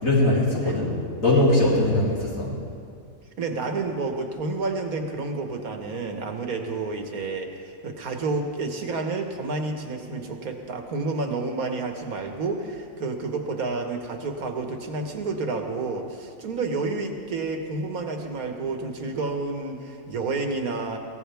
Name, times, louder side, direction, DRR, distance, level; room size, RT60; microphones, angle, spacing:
voice 1, 0.0-2.6, left 1 dB, 70° left, -6 dB, 4.2 m, -21 dB
voice 2, 3.4-21.0, right 3 dB, 90° right, 4 dB, 1.8 m, -30 dB
23.0 x 17.0 x 3.5 m, 2.3 s
omnidirectional pair, 1.5 m